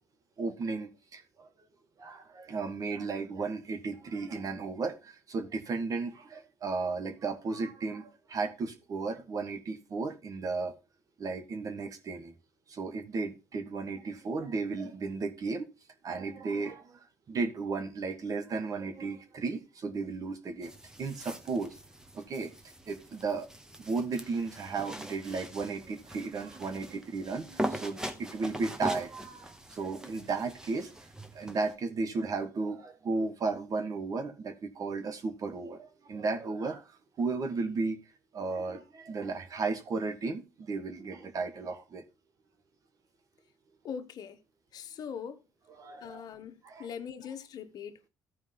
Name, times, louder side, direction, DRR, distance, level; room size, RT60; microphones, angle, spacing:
voice 1, 0.4-1.5 2.0-10.7 11.2-12.3 12.7-15.7 16.0-20.7 21.0-21.7 22.1-22.5 22.9-23.5 23.8-30.9 31.3-38.0 38.3-42.0 45.8-46.2 46.6-46.9, right 4 dB, 50° right, 1.6 m, -34 dB
sound 1, 20.6-31.7, right 1 dB, 10° right, 1.2 m, -41 dB
voice 2, 43.8-44.4 44.7-45.4 46.0-48.1, left 7 dB, 60° left, 1.0 m, -41 dB
14.0 x 4.8 x 3.8 m
supercardioid pair, 80°, 8 cm